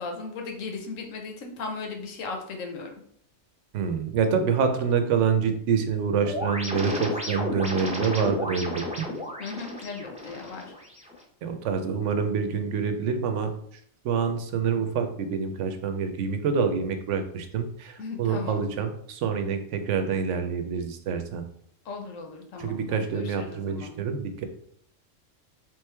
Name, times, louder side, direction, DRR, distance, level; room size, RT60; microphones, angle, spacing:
voice 1, 0.0-2.9 9.4-10.7 18.0-18.6 21.8-23.9, left 4 dB, 90° left, 3 dB, 1.2 m, -37 dB
voice 2, 3.7-9.1 11.4-13.5 14.0-21.5 22.6-24.5, right 6 dB, 75° right, 7 dB, 0.9 m, -27 dB
sound 1, 6.2-11.2, left 1 dB, 10° right, 0.5 m, -33 dB
3.7 x 3.1 x 3.3 m, 0.66 s
omnidirectional pair, 1.3 m